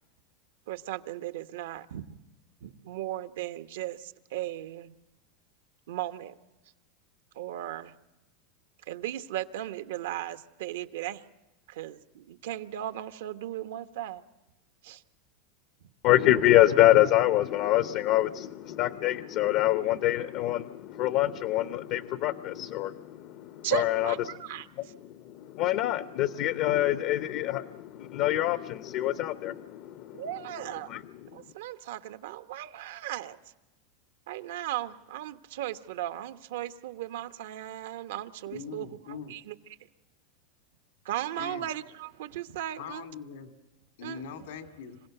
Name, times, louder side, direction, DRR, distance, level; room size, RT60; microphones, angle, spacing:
voice 1, 0.7-2.2 2.6-4.9 5.9-6.4 7.3-7.9 8.9-11.2 11.7-14.2 14.8-15.0 23.6-24.7 30.2-30.9 31.3-33.4 34.3-39.5 41.0-43.1 44.0-44.2, right 13 dB, 80° right, 10 dB, 1.2 m, -36 dB
voice 2, 16.0-24.1 24.8-30.2 30.9-31.4, left 14 dB, 50° left, 12 dB, 0.7 m, -26 dB
voice 3, 38.5-39.4 41.4-41.7 42.8-43.5 44.0-45.0, left 6 dB, 85° left, 6 dB, 2.6 m, -41 dB
26.5 x 16.5 x 7.9 m, 1.0 s
supercardioid pair, 140°, 0 cm